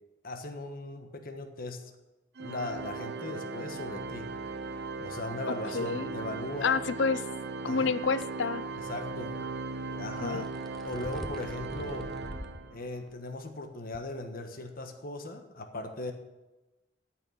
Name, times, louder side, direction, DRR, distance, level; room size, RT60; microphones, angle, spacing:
voice 1, 0.2-1.9 2.4-4.3 5.0-6.8 7.7-8.0 8.8-9.5 9.9-10.5 10.8-12.1 12.7-16.1, left 2 dB, 50° left, 5 dB, 1.4 m, -38 dB
Organ, 2.4-13.0, right 4 dB, 60° right, 0.8 m, -38 dB
voice 2, 5.7-6.1 6.6-7.2 7.6-8.7 10.2-10.4, left 5 dB, 75° left, 15 dB, 0.6 m, -29 dB
sound 1, 8.0-8.3 10.3-12.6 13.1-13.2 13.9-14.0, equal, ahead, 1.0 m, -44 dB
13.5 x 6.1 x 8.6 m, 1.1 s
head